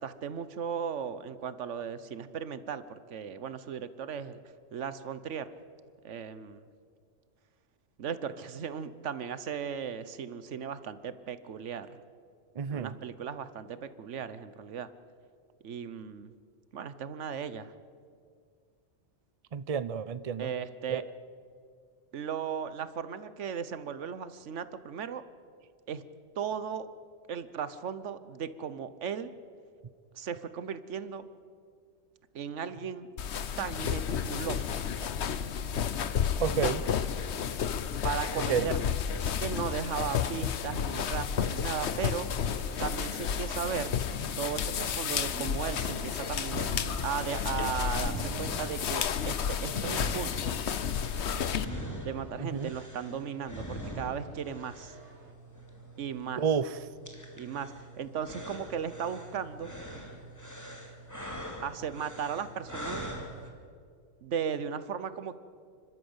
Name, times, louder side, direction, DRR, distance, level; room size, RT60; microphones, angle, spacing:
voice 1, 0.0-4.4 4.7-5.5 6.0-6.7 8.0-12.0 12.7-14.9 15.6-16.3 16.7-17.7 20.4-21.0 22.1-25.2 25.9-26.0 26.4-26.9 27.3-29.3 30.1-31.2 32.3-33.1 33.6-34.7 38.0-38.9 39.4-42.3 42.8-44.0 44.4-46.6 47.0-50.7 52.0-55.0 56.0-56.4 57.4-59.7 61.6-63.1 64.2-65.4, right 7 dB, 90° right, 14 dB, 1.2 m, -36 dB
voice 2, 12.6-12.9 19.5-20.5 20.9-21.0 36.4-36.8 38.5-38.7 52.4-52.7 56.4-56.7, right 7 dB, 40° right, 15 dB, 0.6 m, -30 dB
sound 1, 33.2-51.7, left 7 dB, 70° left, 1.1 m, -31 dB
sound 2, 41.1-55.3, right 3 dB, 75° right, 2.6 m, -49 dB
sound 3, 46.5-63.5, right 1 dB, 15° left, 2.6 m, -43 dB
30.0 x 12.5 x 8.0 m, 2.2 s
omnidirectional pair, 1.2 m